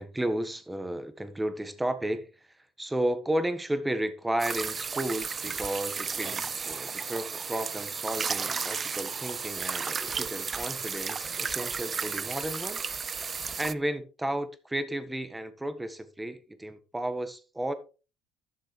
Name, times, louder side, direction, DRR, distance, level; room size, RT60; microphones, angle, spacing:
voice 1, 0.0-2.5 2.8-12.8 13.1-17.7, right 1 dB, 10° right, 1.3 m, -33 dB
sound 1, 4.4-13.7, right 5 dB, 30° right, 0.4 m, -33 dB
11.5 x 6.5 x 3.3 m
supercardioid pair, 95°, 0 cm